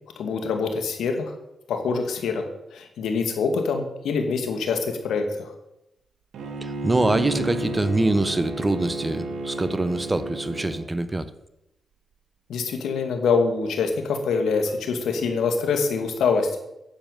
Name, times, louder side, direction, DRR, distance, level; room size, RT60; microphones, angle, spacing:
voice 1, 0.2-1.3 1.7-5.5 12.5-16.5, left 5 dB, 85° left, 5 dB, 2.2 m, -25 dB
Bowed string instrument, 6.3-10.9, right 2 dB, 85° right, 2.2 m, -31 dB
voice 2, 6.6-11.3, right 2 dB, 20° right, 13 dB, 1.1 m, -24 dB
10.5 x 7.9 x 9.1 m, 0.87 s
cardioid pair, 60°, 0 cm